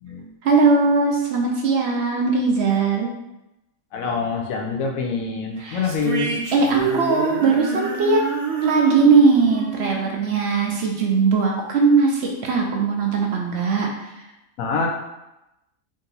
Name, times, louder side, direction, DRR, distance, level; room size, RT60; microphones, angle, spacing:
voice 1, 0.4-3.1 5.6-5.9 6.5-8.2 8.6-13.9, right 4 dB, 65° right, 1 dB, 0.7 m, -19 dB
voice 2, 3.9-6.4 14.6-14.9, left 4 dB, 80° left, 1 dB, 1.0 m, -25 dB
sound 1, 5.8-11.2, right 5 dB, 80° right, 1.2 m, -28 dB
3.7 x 2.7 x 4.0 m, 0.92 s
omnidirectional pair, 1.4 m